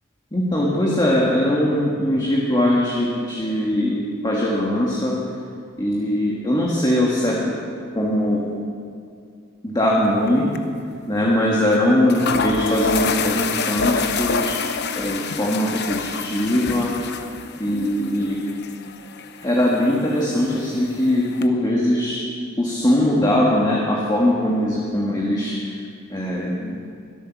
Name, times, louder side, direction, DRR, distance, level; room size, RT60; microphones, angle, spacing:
voice 1, 0.3-5.2 5.8-7.5 7.9-8.5 9.6-10.5 11.1-14.5 14.9-16.9 17.6-18.4 19.4-22.2 22.6-25.7 26.1-26.7, left 1 dB, 20° left, -4 dB, 1.7 m, -21 dB
sound 1, 10.0-10.3 10.5-10.6 11.7-11.8 12.1-21.5, left 5 dB, 55° left, 0.9 m, -28 dB
23.0 x 8.6 x 6.0 m, 2.3 s
head